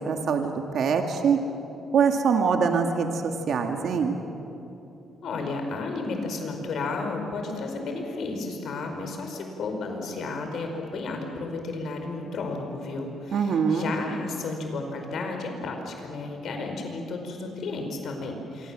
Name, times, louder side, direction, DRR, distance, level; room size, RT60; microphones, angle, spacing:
voice 1, 0.1-1.4 1.9-4.2 13.3-13.9, right 6 dB, 65° right, 4 dB, 2.1 m, -24 dB
voice 2, 5.2-18.7, left 3 dB, 65° left, 4 dB, 5.0 m, -33 dB
26.5 x 24.5 x 7.6 m, 2.9 s
cardioid pair, 90°, 0 cm